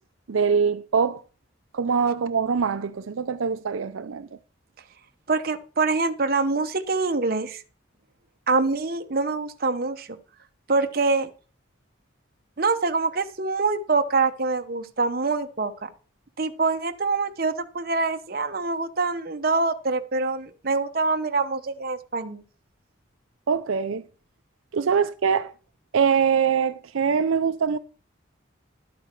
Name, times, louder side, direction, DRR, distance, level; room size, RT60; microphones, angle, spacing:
voice 1, 0.3-1.2 1.7-4.3 23.5-24.0 24.7-25.5 25.9-27.8, right 6 dB, 80° right, 0.5 m, -23 dB
voice 2, 5.3-7.6 8.5-10.1 10.7-11.3 12.6-15.9 16.4-22.4, right 3 dB, 45° right, 0.9 m, -25 dB
12.0 x 8.6 x 4.5 m
head